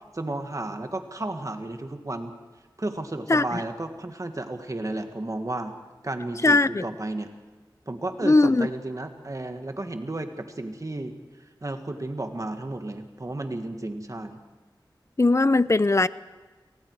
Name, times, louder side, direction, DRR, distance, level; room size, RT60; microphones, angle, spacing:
voice 1, 0.1-2.3 2.8-5.7 6.0-7.3 7.9-11.1 11.6-14.4, right 2 dB, 40° right, 1.9 m, -33 dB
voice 2, 3.3-3.6 6.4-6.9 8.2-8.7 15.2-16.1, left 2 dB, 35° left, 0.6 m, -19 dB
29.0 x 19.0 x 4.8 m
wide cardioid pair, 45°, 8 cm